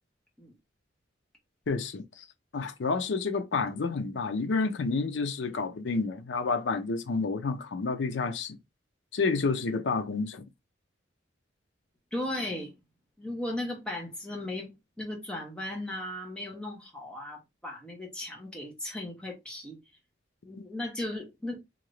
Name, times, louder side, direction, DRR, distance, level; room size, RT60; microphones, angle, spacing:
voice 1, 1.7-2.2 2.5-8.6 9.1-10.4, left 4 dB, 80° left, 0.5 m, -29 dB
voice 2, 12.1-12.7 13.2-14.7 15.0-19.8 20.4-21.6, left 1 dB, 5° left, 0.9 m, -36 dB
2.8 x 2.6 x 3.1 m
head